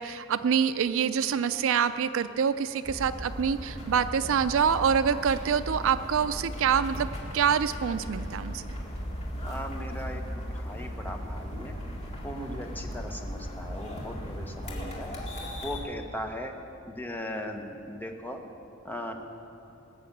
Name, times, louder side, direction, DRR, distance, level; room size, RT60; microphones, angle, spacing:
voice 1, 0.0-7.1 7.3-8.6, right 7 dB, 65° right, 12 dB, 0.4 m, -26 dB
sound 1, 2.8-15.8, equal, 30° left, 2.1 m, -37 dB
voice 2, 9.4-11.8 12.2-15.1 15.6-16.5 16.9-18.4 18.8-19.1, equal, 10° left, 3 dB, 1.1 m, -38 dB
19.0 x 6.6 x 8.5 m, 2.7 s
head